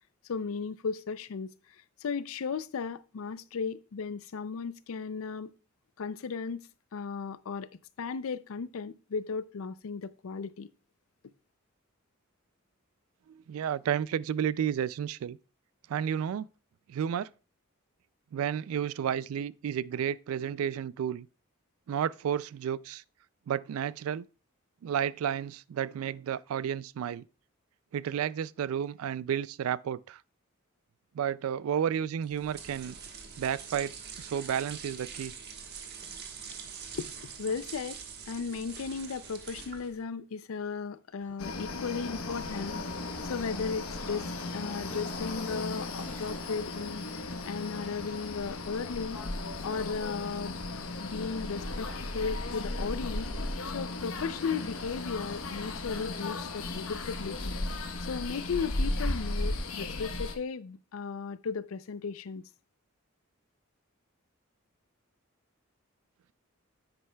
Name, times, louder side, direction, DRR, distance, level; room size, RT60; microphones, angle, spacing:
voice 1, 0.3-1.5 2.0-5.5 6.0-6.6 6.9-7.7 8.0-10.7 36.9-37.1 37.4-38.0 38.3-42.8 43.2-47.0 47.4-49.2 49.6-50.6 51.0-51.9 52.1-53.3 53.6-57.5 58.0-62.4, left 5 dB, 75° left, 0.5 m, -35 dB
voice 2, 13.3-15.4 15.9-16.5 16.9-17.3 18.3-21.3 21.9-23.0 23.5-24.3 24.8-27.2 27.9-30.2 31.1-33.0 33.4-35.3, right 9 dB, 75° right, 0.3 m, -32 dB
sound 1, 32.2-40.0, right 6 dB, 50° right, 1.3 m, -44 dB
Bird vocalization bird call bird song / Train, 41.2-52.4, equal, 10° left, 1.9 m, -53 dB
sound 2, 41.4-60.3, left 2 dB, 90° left, 1.0 m, -36 dB
9.9 x 7.9 x 2.3 m
head